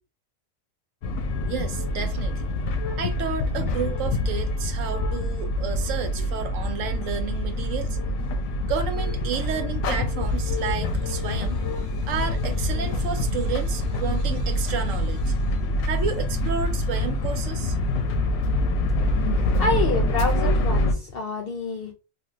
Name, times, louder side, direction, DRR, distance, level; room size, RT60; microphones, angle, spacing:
sound 1, 1.0-20.9, left 1 dB, 85° left, 1.0 m, -25 dB
voice 1, 1.5-2.5 3.0-8.0 8.7-15.4 15.8-17.8, right 7 dB, 75° right, 0.9 m, -31 dB
voice 2, 19.3-21.9, left 3 dB, 65° left, 0.6 m, -28 dB
3.3 x 2.6 x 2.4 m
omnidirectional pair, 1.4 m